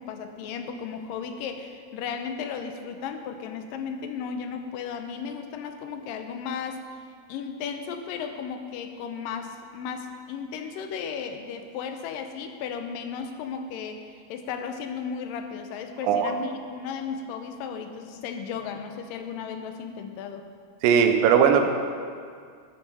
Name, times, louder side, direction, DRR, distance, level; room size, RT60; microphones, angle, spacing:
voice 1, 0.0-6.8 7.3-20.5, left 6 dB, 85° left, 6 dB, 2.4 m, -35 dB
voice 2, 20.8-21.7, right 7 dB, 90° right, 6 dB, 2.5 m, -19 dB
12.5 x 7.2 x 5.5 m, 2.1 s
omnidirectional pair, 3.9 m